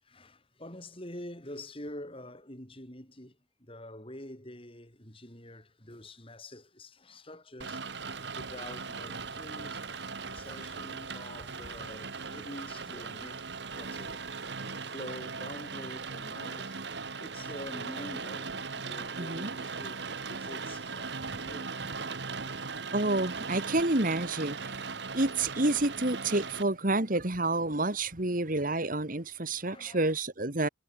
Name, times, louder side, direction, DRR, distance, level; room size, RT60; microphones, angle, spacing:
voice 1, 0.0-7.9 8.3-14.2 14.8-16.9 17.2-21.7 22.2-22.3 29.4-30.1, left 1 dB, 30° left, 6.7 m, -46 dB
Rain, 7.6-26.6, right 4 dB, 60° right, 1.5 m, -38 dB
voice 2, 19.2-19.5 22.9-24.7 25.1-30.7, right 2 dB, 45° right, 2.2 m, -29 dB
head